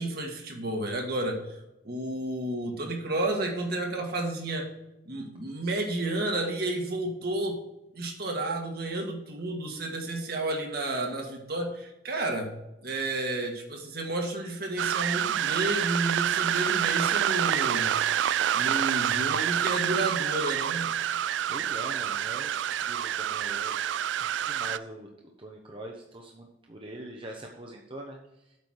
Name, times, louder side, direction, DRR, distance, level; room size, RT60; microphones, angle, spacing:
voice 1, 0.0-1.4 1.9-4.7 5.1-7.6 7.9-12.5 12.8-17.9 18.5-20.9, right 2 dB, 55° right, 2 dB, 1.8 m, -31 dB
sound 1, 14.8-24.8, right 10 dB, 75° right, 0.3 m, -27 dB
voice 2, 21.5-23.8 24.2-25.1 25.4-28.2, right 1 dB, 30° right, 0 dB, 0.9 m, -43 dB
8.3 x 5.2 x 6.4 m, 0.91 s
head